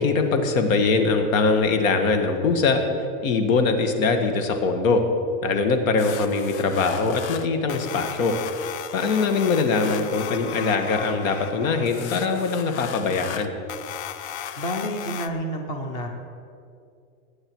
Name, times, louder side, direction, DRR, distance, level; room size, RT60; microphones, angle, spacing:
voice 1, 0.0-2.8 3.2-5.0 5.4-8.3 8.9-13.5, left 4 dB, 80° left, 6 dB, 1.8 m, -22 dB
sound 1, 6.0-15.3, left 10 dB, 55° left, 0.7 m, -36 dB
voice 2, 14.5-16.1, equal, 10° left, 4 dB, 0.4 m, -29 dB
20.0 x 9.0 x 4.7 m, 2.5 s
supercardioid pair, 175°, 40 cm